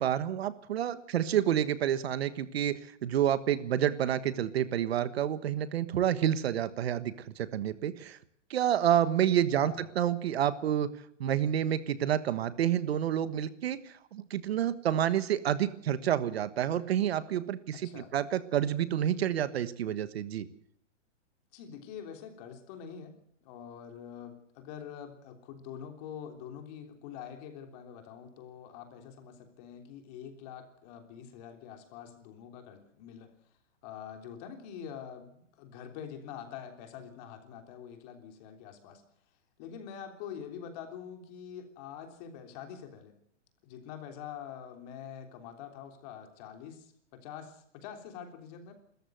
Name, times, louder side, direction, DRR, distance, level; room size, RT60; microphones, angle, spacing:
voice 1, 0.0-8.2 8.5-10.9 11.2-20.4, right 10 dB, 55° right, 14 dB, 1.4 m, -29 dB
voice 2, 9.5-9.9 17.7-18.1 21.5-23.1 23.4-33.3 33.8-39.0 39.6-43.1 43.6-48.7, left 8 dB, 30° left, 5 dB, 3.4 m, -45 dB
27.0 x 14.5 x 7.9 m, 0.68 s
hypercardioid pair, 160°, 37 cm